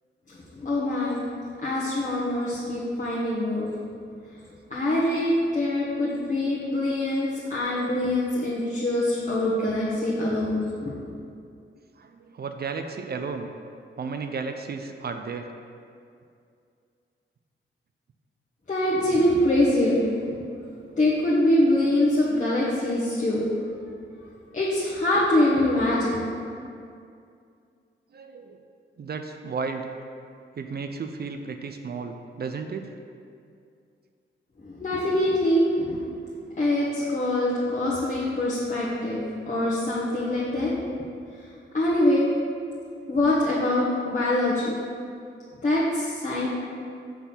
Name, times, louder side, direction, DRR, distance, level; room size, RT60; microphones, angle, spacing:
voice 1, 0.6-1.2 1.6-3.7 4.7-10.9 18.7-20.0 21.0-23.5 24.5-26.3 34.6-36.0 36.6-40.7 41.7-42.3 43.1-44.7 45.6-46.5, left 1 dB, 40° left, -8 dB, 1.2 m, -24 dB
voice 2, 12.0-13.5 14.0-15.4 28.1-28.6 29.0-29.8 30.6-32.9, right 5 dB, 50° right, 6 dB, 0.5 m, -33 dB
5.7 x 4.1 x 6.0 m, 2.4 s
cardioid pair, 75°, 20 cm